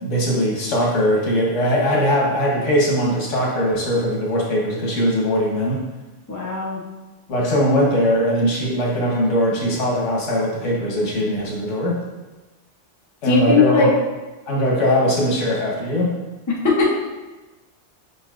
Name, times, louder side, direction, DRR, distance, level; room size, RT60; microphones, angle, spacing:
voice 1, 0.0-5.8 7.3-12.0 13.2-13.9 14.5-16.2, equal, 85° left, -3 dB, 1.4 m, -20 dB
voice 2, 6.3-6.8 13.2-13.9 16.5-16.9, left 4 dB, 20° left, -2 dB, 0.5 m, -18 dB
5.1 x 4.0 x 2.4 m, 1.1 s
omnidirectional pair, 1.2 m